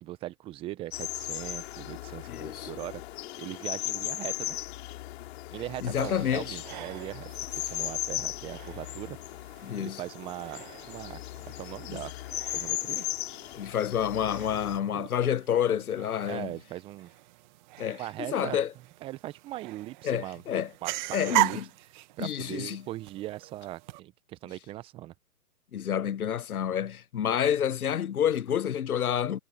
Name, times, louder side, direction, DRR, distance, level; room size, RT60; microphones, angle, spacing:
voice 1, 0.0-3.0 3.4-4.6 5.5-9.2 9.8-11.2 11.5-12.1 12.5-13.1 14.9-15.1 16.3-17.1 18.0-18.6 19.0-20.4 20.8-20.9 21.3-21.6 22.2-25.1, right 15 dB, 10° right, 0.7 m, -39 dB
sound 1, 0.9-14.8, left 15 dB, 40° left, 3.9 m, -37 dB
voice 2, 2.3-2.7 5.8-6.6 9.6-10.0 11.9-12.0 12.9-13.0 13.5-16.5 17.8-18.0 18.3-18.7 20.0-20.7 21.1-21.7 22.2-22.8 25.7-29.4, left 9 dB, 70° left, 1.0 m, -29 dB
sound 2, 5.9-24.0, right 21 dB, 30° right, 1.4 m, -39 dB
hypercardioid pair, 135°, 45 cm